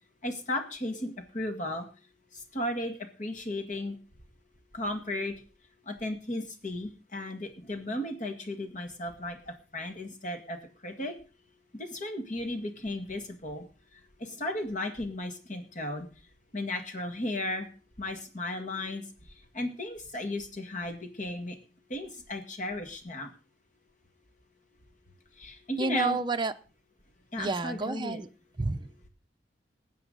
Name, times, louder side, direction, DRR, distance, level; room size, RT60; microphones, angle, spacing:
voice 1, 0.2-1.9 2.5-4.0 4.7-5.3 5.9-10.6 10.8-11.1 11.7-13.6 14.2-16.1 16.5-17.7 18.0-19.0 19.5-21.6 21.9-23.3 25.4-26.2 27.3-28.2, left 1 dB, 45° left, 5 dB, 2.0 m, -35 dB
voice 2, 25.8-26.5 27.4-28.3 28.6-28.9, right 3 dB, 25° right, 7 dB, 0.6 m, -29 dB
19.5 x 8.2 x 3.9 m, 0.36 s
head